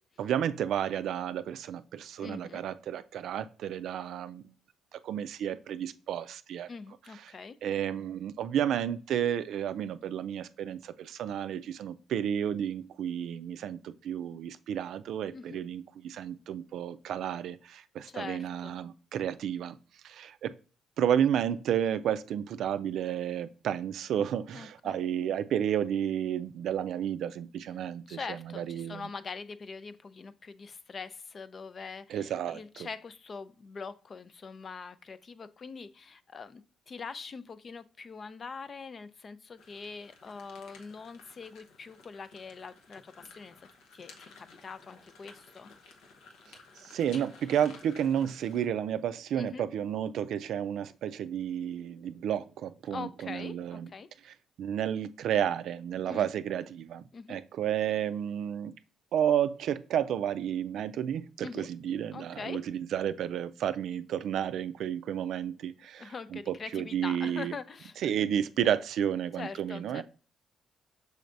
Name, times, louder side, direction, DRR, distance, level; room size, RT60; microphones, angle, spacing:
voice 1, 0.2-4.5 4.9-6.7 7.2-7.3 7.6-19.8 20.0-20.5 21.0-29.1 32.1-32.9 46.5-53.9 54.2-58.7 59.1-67.5 68.0-70.0, right 9 dB, 75° right, 0.3 m, -32 dB
voice 2, 2.2-2.6 6.7-7.6 15.3-15.6 18.1-18.8 24.5-25.0 28.1-45.7 49.3-49.6 52.9-54.1 56.1-56.3 57.1-57.4 61.4-61.7 62.1-62.6 66.0-68.0 69.4-70.0, left 5 dB, 40° left, 0.4 m, -43 dB
sound 1, 39.6-48.7, left 4 dB, 90° left, 0.8 m, -54 dB
6.3 x 3.3 x 2.5 m
cardioid pair, 90°, 0 cm